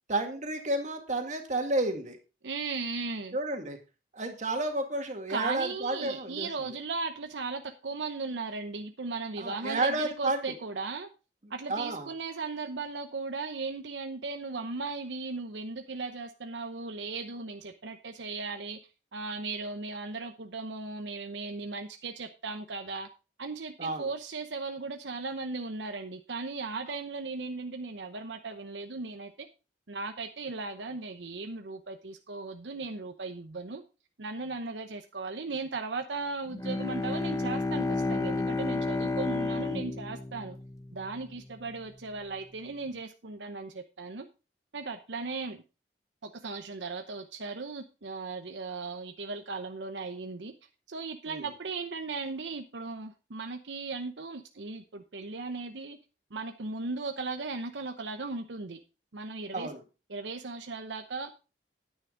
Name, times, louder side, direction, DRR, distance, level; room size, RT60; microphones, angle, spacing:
voice 1, 0.1-2.2 3.3-3.8 4.1-6.7 9.4-10.5 11.4-12.1 23.8-24.1 51.3-51.5 59.5-59.8, right 2 dB, 45° right, 4 dB, 2.1 m, -31 dB
voice 2, 2.4-3.4 5.3-11.1 11.5-18.8 19.1-23.1 23.4-29.3 29.9-33.8 34.2-40.6 40.9-44.3 44.7-45.6 46.2-50.5 50.9-56.0 56.3-58.8 59.1-59.7 60.1-61.3, right 3 dB, 80° right, 7 dB, 0.8 m, -37 dB
Bowed string instrument, 36.5-41.3, left 3 dB, 20° left, 0.9 m, -31 dB
9.7 x 9.7 x 3.9 m, 0.31 s
head